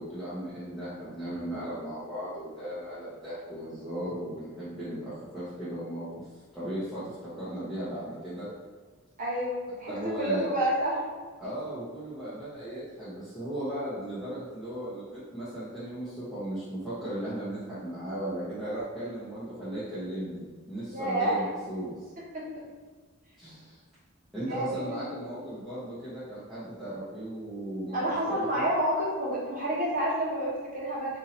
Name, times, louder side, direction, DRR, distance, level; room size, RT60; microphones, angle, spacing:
voice 1, 0.0-6.1 6.5-8.5 9.9-10.5 11.4-22.1 23.4-23.8 24.3-28.0 28.3-28.7, right 1 dB, ahead, -14 dB, 0.9 m, -36 dB
voice 2, 9.2-11.0 20.9-21.4 22.3-22.6 24.5-25.2 27.9-31.2, right 1 dB, 35° right, -6 dB, 1.1 m, -29 dB
2.7 x 2.7 x 4.1 m, 1.5 s
head